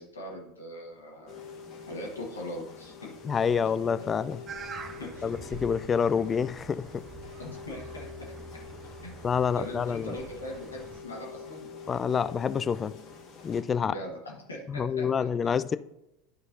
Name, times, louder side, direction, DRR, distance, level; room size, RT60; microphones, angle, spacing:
voice 1, 0.0-1.4 1.9-3.1 5.0-5.2 7.4-8.1 9.0-9.2 9.6-11.7 13.8-15.3, left 1 dB, 80° left, 1.5 m, -40 dB
sound 1, 1.3-13.6, left 5 dB, 45° left, 1.3 m, -46 dB
voice 2, 3.2-4.4 5.2-7.0 9.2-10.2 11.9-12.9 13.4-13.9 14.7-15.8, left 6 dB, 25° left, 0.3 m, -27 dB
sound 2, 4.5-11.0, right 4 dB, 35° right, 0.6 m, -45 dB
11.5 x 4.7 x 2.7 m
figure-of-eight pair, 75°, 0 cm